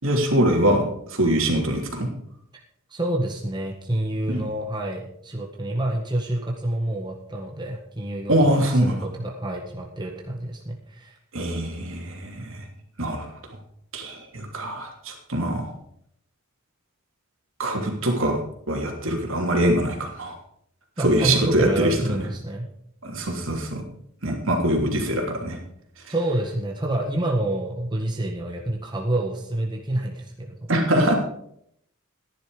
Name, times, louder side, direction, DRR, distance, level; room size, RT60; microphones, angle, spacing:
voice 1, 0.0-0.9 1.1-2.1 4.3-4.4 8.3-8.9 11.3-12.6 13.0-13.3 13.9-15.7 17.6-18.4 18.7-20.3 21.0-21.9 23.0-23.8 24.2-25.6 30.7-31.1, right 1 dB, 65° right, 1 dB, 3.1 m, -23 dB
voice 2, 2.9-11.2 21.0-22.7 26.1-30.7, right 1 dB, 20° right, -1 dB, 1.6 m, -28 dB
14.5 x 10.5 x 5.1 m, 0.71 s
head